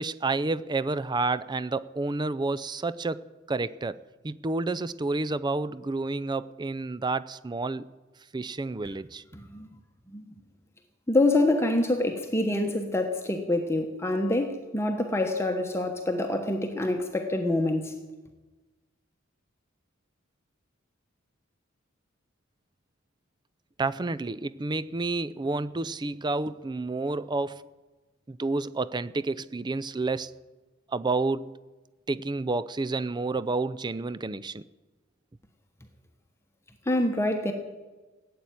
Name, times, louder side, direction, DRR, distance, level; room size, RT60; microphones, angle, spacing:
voice 1, 0.0-3.2 3.5-4.0 4.2-7.8 8.3-9.2 23.8-27.6 28.3-30.3 30.9-31.6 32.1-34.6, right 3 dB, 20° right, 0.4 m, -30 dB
voice 2, 9.3-9.7 10.1-10.2 11.1-18.0 36.9-37.5, left 2 dB, 15° left, 1.1 m, -26 dB
16.5 x 8.6 x 9.3 m
head